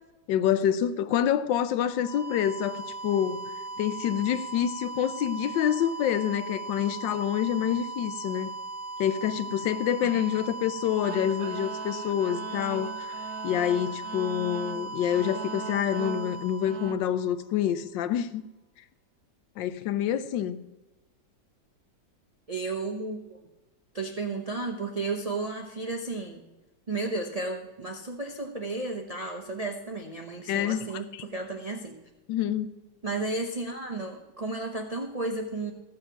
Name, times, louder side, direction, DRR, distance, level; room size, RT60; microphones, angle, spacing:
voice 1, 0.3-3.5 3.8-8.5 9.0-13.1 13.4-18.4 19.6-20.6 30.5-30.8 32.3-32.7, left 10 dB, 75° left, 1.3 m, -27 dB
sound 1, 1.8-17.6, right 3 dB, 50° left, 1.5 m, -38 dB
sound 2, 11.0-17.0, right 7 dB, 90° right, 1.4 m, -40 dB
voice 2, 22.5-23.4 23.9-26.4 26.9-32.0 33.0-35.7, right 3 dB, 70° right, 0.3 m, -33 dB
14.5 x 6.5 x 5.8 m
omnidirectional pair, 2.0 m